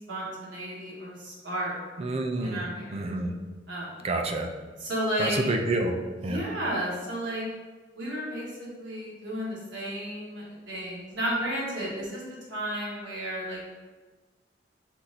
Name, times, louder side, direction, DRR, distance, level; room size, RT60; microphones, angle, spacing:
voice 1, 0.1-1.7 2.4-3.0 3.7-4.0 4.8-5.4 6.2-7.4 7.9-13.6, equal, 80° right, -6 dB, 1.5 m, -33 dB
voice 2, 2.0-2.6 2.9-3.3 4.0-4.5 5.2-5.9 6.2-6.4, right 2 dB, 35° right, 4 dB, 0.4 m, -28 dB
4.4 x 2.6 x 3.9 m, 1.3 s
head